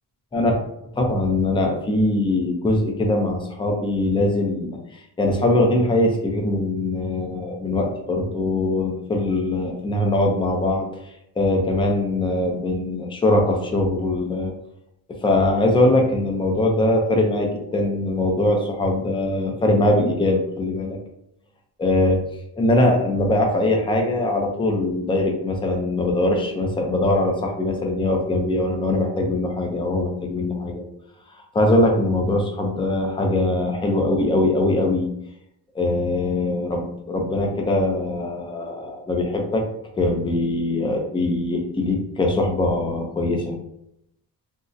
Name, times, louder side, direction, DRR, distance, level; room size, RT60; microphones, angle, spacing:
voice 1, 0.9-14.5 15.1-21.0 21.8-22.2 22.6-30.8 31.5-35.1 35.7-39.7 40.0-43.6, left 2 dB, 10° left, 2 dB, 0.4 m, -22 dB
3.6 x 2.0 x 2.6 m, 0.79 s
cardioid pair, 125°, 43 cm